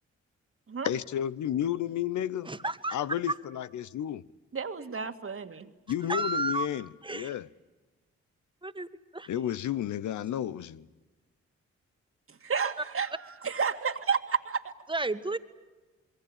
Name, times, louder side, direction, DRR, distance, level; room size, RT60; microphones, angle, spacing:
voice 1, 0.8-2.5 2.9-4.2 5.9-7.5 9.3-10.9, left 11 dB, 70° left, 0.8 m, -32 dB
voice 2, 2.4-3.0 3.3-3.4 6.1-6.7 7.0-7.4 8.6-8.9 9.1-9.3 14.9-15.4, right 2 dB, 15° right, 1.8 m, -31 dB
voice 3, 4.5-5.7 12.3-13.1 13.4-14.7, right 6 dB, 45° right, 2.1 m, -31 dB
27.0 x 22.5 x 8.9 m
supercardioid pair, 50°, 30 cm